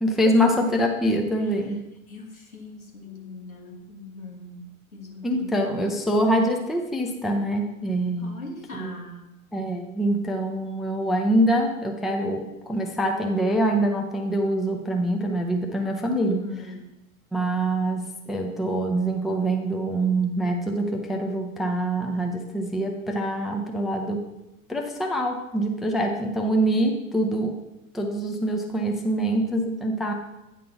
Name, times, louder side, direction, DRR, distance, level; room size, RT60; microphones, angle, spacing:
voice 1, 0.0-1.8 5.2-8.4 8.7-8.9 9.5-16.5 17.3-24.2 24.7-27.6 27.9-30.1, right 1 dB, ahead, 2 dB, 0.4 m, -25 dB
voice 2, 2.1-6.0 8.2-9.3 16.2-16.9, left 2 dB, 85° left, 0 dB, 1.5 m, -40 dB
9.2 x 3.7 x 5.7 m, 0.93 s
figure-of-eight pair, 90°, 41 cm